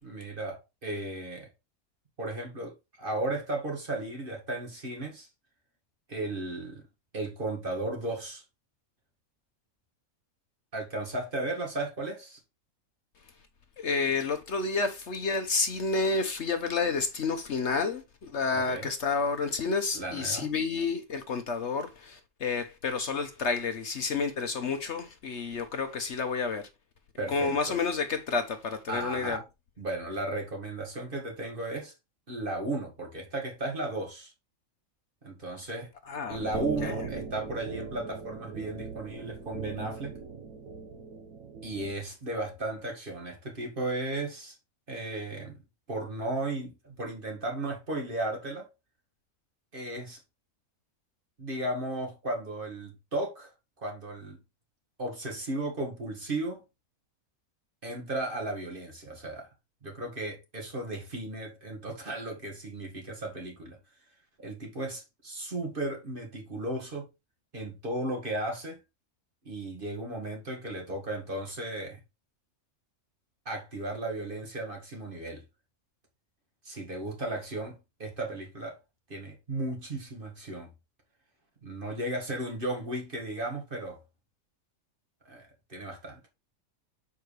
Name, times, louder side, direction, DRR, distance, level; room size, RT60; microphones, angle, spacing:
voice 1, 0.0-1.5 2.2-5.3 6.1-6.8 7.1-8.4 10.7-12.4 18.5-18.9 19.9-20.5 27.2-27.8 28.9-29.4 29.8-31.9 32.3-34.3 35.2-35.9 36.3-40.1 41.6-44.6 44.9-45.6 45.9-48.7 49.7-50.2 51.4-53.5 53.8-54.4 55.0-56.6 57.8-59.5 59.8-63.8 64.4-67.1 67.5-68.8 69.4-72.0 73.5-75.4 76.6-78.8 79.1-80.7 81.6-84.0 85.3-86.3, right 2 dB, 40° right, 2.0 m, -35 dB
voice 2, 13.8-26.7 27.3-29.4 36.1-36.4 36.8-37.1, left 4 dB, 55° left, 1.1 m, -30 dB
sound 1, 36.3-41.9, right 4 dB, 85° right, 1.3 m, -39 dB
7.1 x 4.7 x 3.2 m
omnidirectional pair, 1.5 m